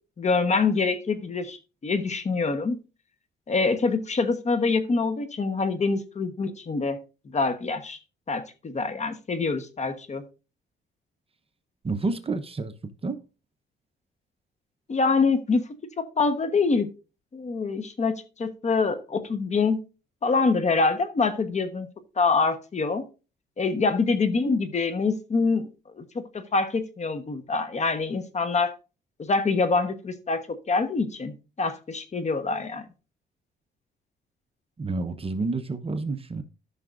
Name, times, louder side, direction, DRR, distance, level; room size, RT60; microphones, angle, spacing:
voice 1, 0.2-2.8 3.5-7.0 7.3-8.0 8.3-10.2 14.9-15.6 16.0-16.9 17.3-19.8 20.2-21.9 22.2-23.1 23.6-25.7 26.0-28.7 29.2-32.9, left 4 dB, 35° left, 1.1 m, -25 dB
voice 2, 11.8-12.7 13.0-13.2 34.8-36.4, right 3 dB, 30° right, 0.9 m, -29 dB
13.5 x 5.8 x 2.5 m
cardioid pair, 90°, 20 cm